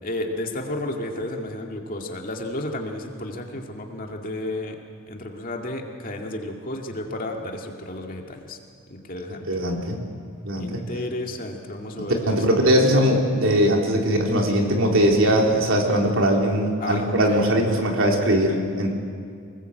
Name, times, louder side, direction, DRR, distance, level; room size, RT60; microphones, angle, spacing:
voice 1, 0.0-4.8 5.1-8.6 8.9-9.5 10.6-12.7 16.8-17.4, left 1 dB, 40° left, 2 dB, 2.3 m, -32 dB
voice 2, 9.5-10.0 10.4-10.8 12.0-18.9, equal, 65° right, 1 dB, 3.6 m, -20 dB
25.5 x 20.0 x 8.1 m, 2.3 s
head